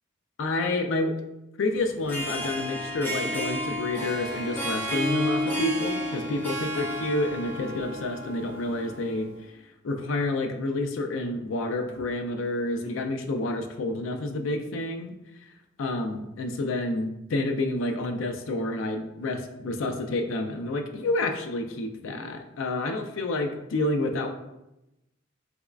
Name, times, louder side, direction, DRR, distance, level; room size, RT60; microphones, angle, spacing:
voice 1, 0.4-1.1 1.6-9.3 9.8-15.1 15.8-24.3, left 2 dB, 75° left, 6 dB, 0.4 m, -29 dB
Harp, 1.9-9.3, equal, 10° left, 0.5 m, -31 dB
3.5 x 3.0 x 2.4 m, 0.92 s
head